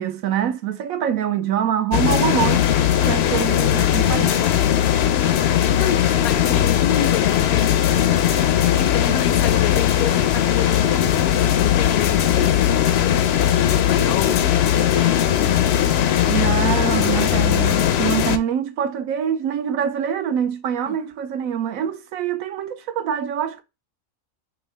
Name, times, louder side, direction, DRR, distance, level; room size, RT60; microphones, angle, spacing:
voice 1, 0.0-2.6 3.0-4.4 16.3-23.6, right 9 dB, 75° right, 1.0 m, -24 dB
sound 1, 1.9-18.4, left 10 dB, 65° left, 0.6 m, -19 dB
voice 2, 5.8-8.1 8.8-13.2 13.7-15.6 20.9-21.0, left 9 dB, 85° left, 1.0 m, -29 dB
4.6 x 2.7 x 3.2 m
omnidirectional pair, 1.5 m